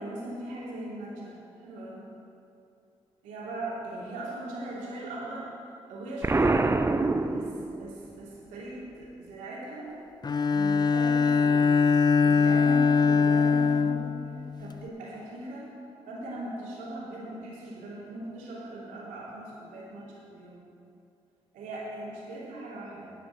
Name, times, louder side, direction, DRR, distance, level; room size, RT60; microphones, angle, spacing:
voice 1, 0.0-2.1 3.2-5.5 5.9-6.8 7.3-9.9 10.5-11.7 12.2-14.2 14.6-15.7 16.1-20.6 21.5-23.1, right 1 dB, 85° right, -6 dB, 2.7 m, -39 dB
Explosion, 6.2-8.1, right 3 dB, 20° right, 0.6 m, -25 dB
Bowed string instrument, 10.2-14.8, left 5 dB, 35° left, 0.5 m, -23 dB
11.5 x 5.2 x 8.0 m, 2.6 s
hypercardioid pair, 45°, 13 cm